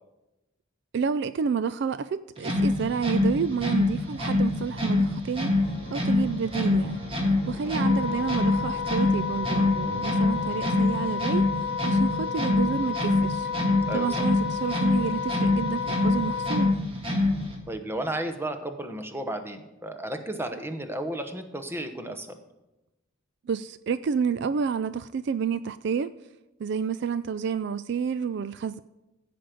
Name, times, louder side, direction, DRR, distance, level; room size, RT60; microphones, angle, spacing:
voice 1, 0.9-5.5 5.9-7.0 7.5-11.4 11.8-13.5 13.9-16.7 23.5-26.1 26.6-28.8, right 6 dB, 55° right, 0.3 m, -29 dB
sound 1, 2.4-17.6, left 2 dB, 25° right, 1.9 m, -26 dB
sound 2, 5.5-10.6, equal, 30° left, 2.1 m, -45 dB
Wind instrument woodwind instrument, 7.7-16.7, left 6 dB, 85° left, 0.5 m, -31 dB
voice 2, 17.7-22.4, right 1 dB, 10° right, 1.0 m, -33 dB
15.0 x 5.2 x 7.7 m
head